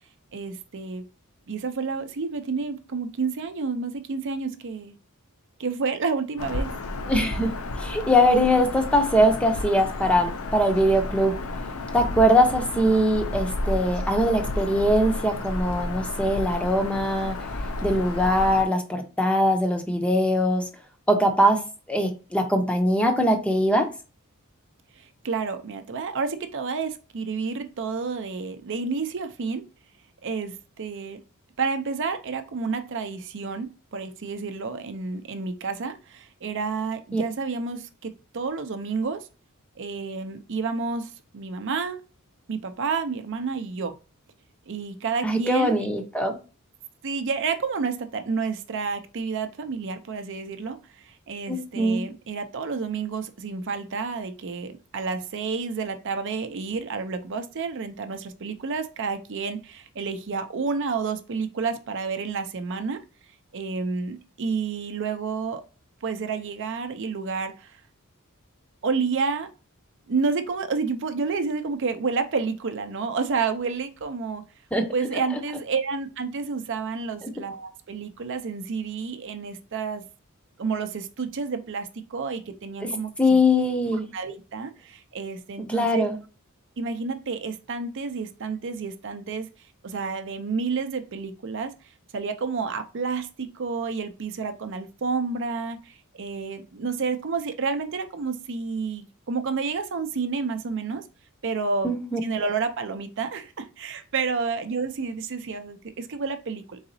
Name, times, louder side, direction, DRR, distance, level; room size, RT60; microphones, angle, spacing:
voice 1, 0.3-1.0 1.5-5.0 5.6-6.7 25.0-29.6 30.2-31.2 31.6-39.3 39.8-42.0 42.5-43.9 44.7-45.8 47.0-63.0 63.5-65.6 66.0-67.8 68.8-69.5 70.1-74.4 74.9-80.0 80.6-83.1 84.1-86.1 86.8-89.5 89.8-91.7 92.1-101.0 101.4-101.9 102.2-106.8, right 4 dB, 55° right, 0.5 m, -30 dB
Bird vocalization bird call bird song, 6.4-18.6, left 2 dB, 70° left, 0.6 m, -32 dB
voice 2, 7.1-11.4 11.9-17.4 17.8-20.7 21.1-21.6 21.9-23.9 37.1-37.2 45.2-46.4 51.5-52.0 74.7-74.8 77.2-77.3 82.8-82.9 83.2-84.1 85.7-86.2 101.8-102.2, equal, 5° left, 0.6 m, -22 dB
4.0 x 3.8 x 2.6 m
head